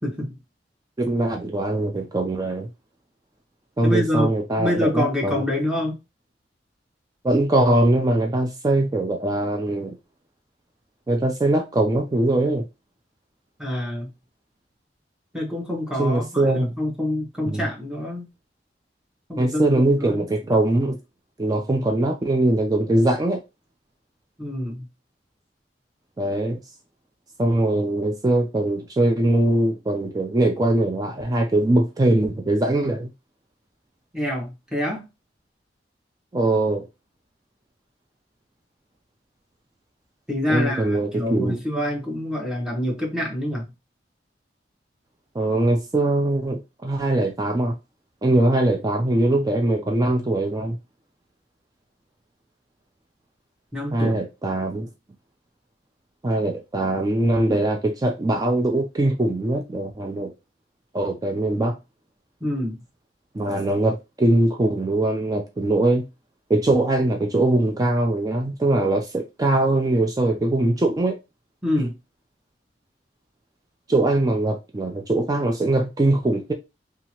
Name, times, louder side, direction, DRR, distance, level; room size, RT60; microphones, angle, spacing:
voice 1, 0.0-0.3 3.8-6.0 13.6-14.1 15.3-18.3 19.3-19.7 20.0-20.2 24.4-24.9 34.1-35.0 40.3-43.7 53.7-54.2 62.4-62.8 71.6-71.9, left 1 dB, 5° right, 0.9 m, -26 dB
voice 2, 1.0-2.7 3.8-5.4 7.2-9.9 11.1-12.6 16.0-16.7 17.4-17.7 19.4-21.0 21.4-23.4 26.2-26.6 27.4-33.1 36.3-36.9 40.5-41.5 45.3-47.7 48.2-50.8 53.9-54.9 56.2-60.3 60.9-61.7 63.3-66.0 66.5-71.2 73.9-76.5, right 1 dB, 20° right, 0.4 m, -21 dB
2.8 x 2.4 x 2.9 m
head